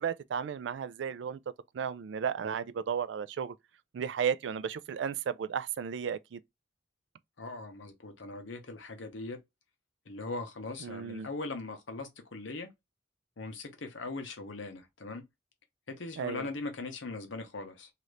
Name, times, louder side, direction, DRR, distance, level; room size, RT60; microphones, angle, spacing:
voice 1, 0.0-1.4 1.7-3.5 3.9-6.4 10.8-11.3 16.2-16.5, right 7 dB, 70° right, 0.3 m, -34 dB
voice 2, 7.4-9.4 10.1-12.7 13.4-15.2 15.9-17.9, left 3 dB, 85° left, 0.9 m, -40 dB
2.8 x 2.5 x 3.2 m
head